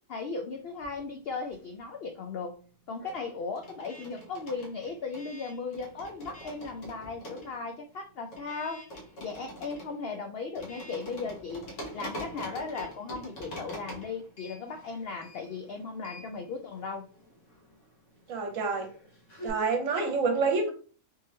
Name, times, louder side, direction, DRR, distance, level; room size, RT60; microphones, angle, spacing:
voice 1, 0.1-2.6 2.9-8.8 9.2-17.0, left 4 dB, 75° left, 5 dB, 0.5 m, -37 dB
sound 1, 0.7-1.9 2.2-19.5, equal, 55° left, 1.4 m, -45 dB
voice 2, 18.3-18.9 19.4-20.7, right 4 dB, 65° right, 4 dB, 1.2 m, -27 dB
3.6 x 2.9 x 3.2 m, 0.40 s
omnidirectional pair, 1.6 m